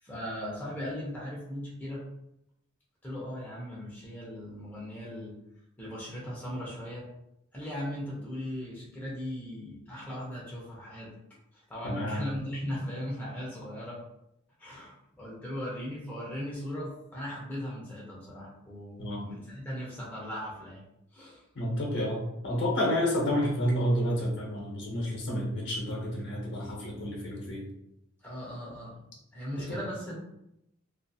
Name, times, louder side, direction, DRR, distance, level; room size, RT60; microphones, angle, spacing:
voice 1, 0.0-2.1 3.0-5.4 5.8-7.1 7.5-11.1 11.5-14.0 14.6-20.8 21.1-21.4 28.2-30.1, equal, 10° left, -6 dB, 0.6 m, -38 dB
voice 2, 11.8-12.3 19.0-19.2 21.5-27.7 29.7-29.8, equal, 60° left, -2 dB, 0.8 m, -30 dB
2.7 x 2.5 x 2.3 m, 0.81 s
head